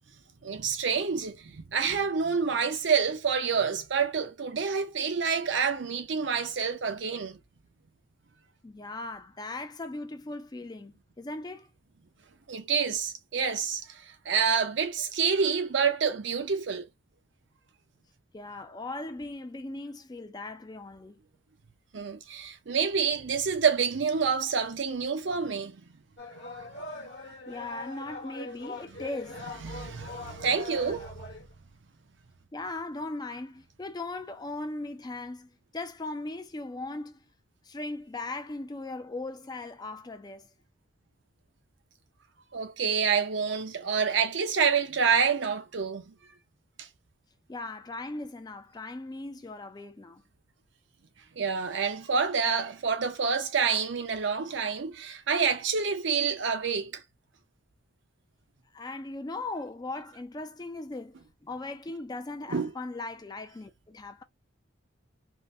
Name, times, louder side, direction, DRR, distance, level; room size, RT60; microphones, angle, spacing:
voice 1, 0.4-7.4 12.5-16.9 21.9-25.8 26.6-26.7 29.6-31.1 42.5-46.1 46.8-46.9 51.4-57.0 62.5-62.7, right 6 dB, 65° right, 0.6 m, -28 dB
voice 2, 8.6-11.7 18.3-21.2 27.5-29.5 32.5-37.2 37.6-40.5 47.5-50.2 58.7-64.2, left 2 dB, 20° left, 0.4 m, -38 dB
sound 1, 26.2-31.5, left 2 dB, 55° left, 1.1 m, -42 dB
3.6 x 2.1 x 2.6 m
head